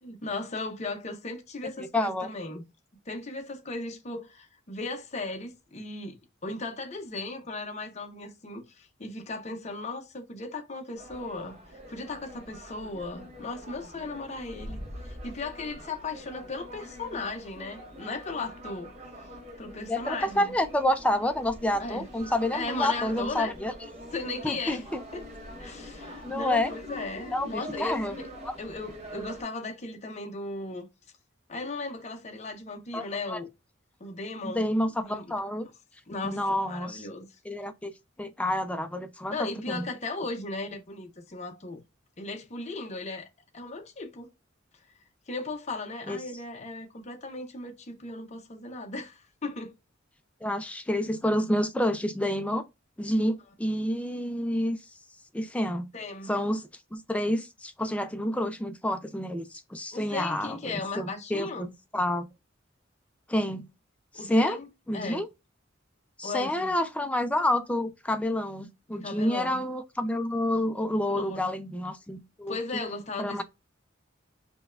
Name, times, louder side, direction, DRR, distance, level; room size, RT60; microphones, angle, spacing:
voice 1, 0.0-2.6 3.1-18.9 19.6-20.5 21.8-22.1 22.5-23.6 24.1-24.8 25.1-25.2 25.6-28.3 28.6-30.9 31.5-33.5 34.0-34.7 35.0-35.3 36.1-37.3 39.3-41.8 42.2-43.3 43.5-44.3 45.3-49.7 55.9-56.4 59.9-61.7 64.1-64.7 64.9-65.2 66.2-66.7 68.9-69.6 71.1-71.5 72.5-73.4, left 3 dB, 35° left, 0.7 m, -36 dB
voice 2, 1.8-2.3 19.9-23.7 24.4-25.0 26.2-26.7 27.3-28.2 28.4-28.6 32.9-33.4 34.4-35.7 36.2-37.1 37.5-37.9 38.2-39.8 46.1-46.2 50.4-52.6 53.0-54.8 55.3-55.9 56.3-62.3 63.3-63.7 64.2-64.6 64.9-65.3 66.2-72.6 73.2-73.4, left 1 dB, 5° left, 0.3 m, -29 dB
sound 1, 10.9-29.4, equal, 35° right, 0.8 m, -44 dB
5.1 x 2.2 x 2.3 m
head